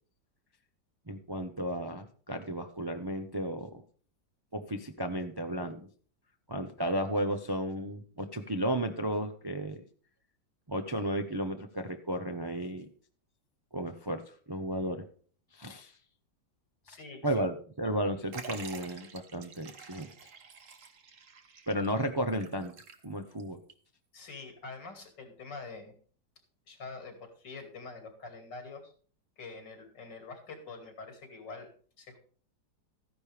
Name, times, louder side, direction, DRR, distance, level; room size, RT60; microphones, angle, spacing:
voice 1, 1.1-3.8 4.5-5.9 6.5-9.8 10.7-12.9 13.7-14.2 14.5-15.1 15.5-15.9 17.2-20.1 21.7-22.7 23.0-23.6, right 1 dB, 30° right, 6 dB, 0.4 m, -33 dB
voice 2, 16.8-17.3 24.1-25.9 26.7-28.9 29.4-31.7 32.0-32.2, left 3 dB, 90° left, 5 dB, 3.1 m, -45 dB
Liquid, 18.3-23.4 23.7-23.8 24.7-24.8, right 6 dB, 50° right, 1.5 m, -48 dB
14.0 x 10.5 x 3.4 m, 0.43 s
omnidirectional pair, 1.9 m